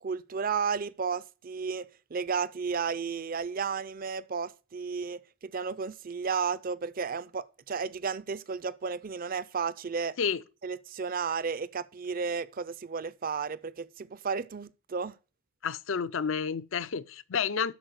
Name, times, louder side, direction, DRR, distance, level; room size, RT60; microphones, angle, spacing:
voice 1, 0.0-10.2 10.6-15.1, right 5 dB, 40° right, 0.5 m, -33 dB
voice 2, 15.6-17.7, left 6 dB, 60° left, 0.5 m, -30 dB
12.5 x 4.9 x 6.4 m
head